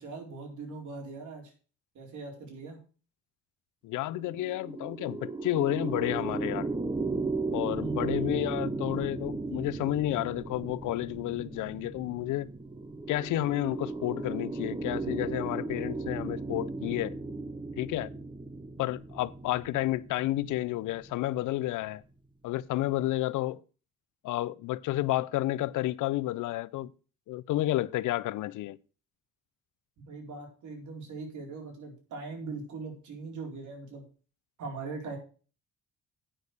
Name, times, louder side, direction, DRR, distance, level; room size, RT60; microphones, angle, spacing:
voice 1, 0.0-1.5 1.9-2.8 7.8-8.3 30.0-34.0 34.6-35.2, right 4 dB, 75° right, 4.2 m, -41 dB
voice 2, 3.8-6.7 7.5-12.5 13.1-17.2 17.8-18.1 18.8-22.0 22.4-23.6 24.2-26.9 27.3-28.8, left 15 dB, 80° left, 0.6 m, -31 dB
sound 1, 4.1-21.6, right 3 dB, 15° right, 0.8 m, -36 dB
8.9 x 6.5 x 6.5 m
cardioid pair, 90°, 30 cm